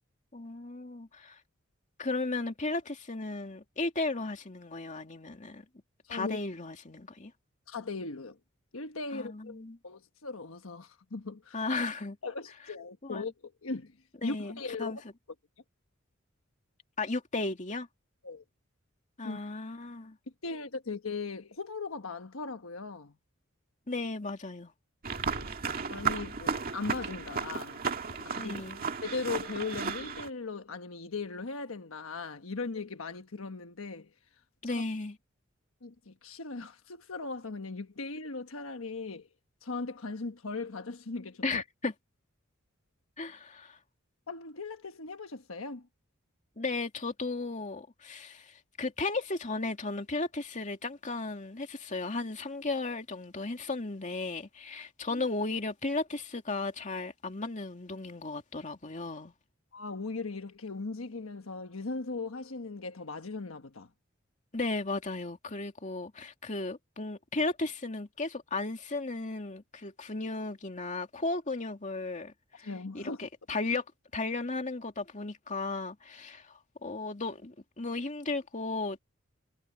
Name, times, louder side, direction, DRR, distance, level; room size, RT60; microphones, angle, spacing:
voice 1, 0.3-1.4 2.0-5.7 6.1-7.3 9.1-9.8 11.5-12.2 13.0-13.3 14.2-15.0 17.0-17.9 19.2-20.2 23.9-24.7 28.2-28.8 34.6-35.2 41.4-41.9 43.2-43.8 46.6-59.3 64.5-73.8 74.1-79.0, left 3 dB, 35° left, 2.5 m, -35 dB
voice 2, 6.0-6.4 7.7-8.4 8.7-11.6 12.2-14.0 14.2-15.0 18.2-18.4 19.2-19.4 20.4-23.1 25.4-27.8 28.2-28.7 29.0-34.1 35.8-39.3 39.6-41.6 44.3-45.9 55.1-55.2 59.7-63.9 72.6-73.2, left 3 dB, 85° left, 1.3 m, -38 dB
sound 1, 25.0-30.3, right 5 dB, 45° right, 2.1 m, -34 dB
head